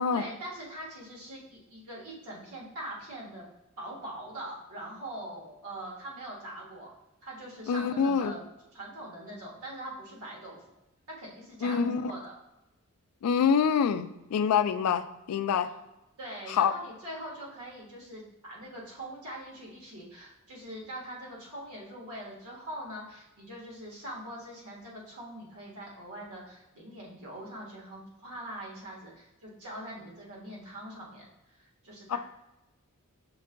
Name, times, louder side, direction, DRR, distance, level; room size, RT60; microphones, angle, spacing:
voice 1, 0.1-3.4 3.8-6.9 7.2-8.4 8.7-10.6 11.1-12.4 15.6-15.7 16.2-32.2, right 1 dB, 90° right, -3 dB, 1.5 m, -42 dB
voice 2, 7.7-8.3 11.6-12.1 13.2-15.7 16.5-16.7 32.1-32.2, left 6 dB, 90° left, 11 dB, 0.3 m, -26 dB
5.3 x 3.7 x 2.2 m, 0.94 s
head